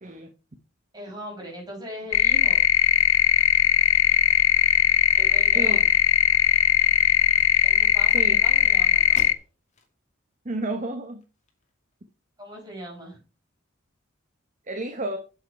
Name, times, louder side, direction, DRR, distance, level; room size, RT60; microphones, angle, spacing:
voice 1, 0.9-2.6 5.1-5.8 7.6-9.3 12.4-13.2, equal, 20° right, -2 dB, 5.7 m, -40 dB
sound 1, 2.1-9.3, left 11 dB, 90° left, 0.5 m, -19 dB
sound 2, 9.1-9.9 10.4-10.5 11.0-11.9, left 2 dB, 35° left, 2.2 m, -47 dB
voice 2, 10.4-11.2 14.7-15.2, right 2 dB, 40° right, 6 dB, 1.0 m, -31 dB
7.9 x 7.7 x 4.6 m, 0.33 s
head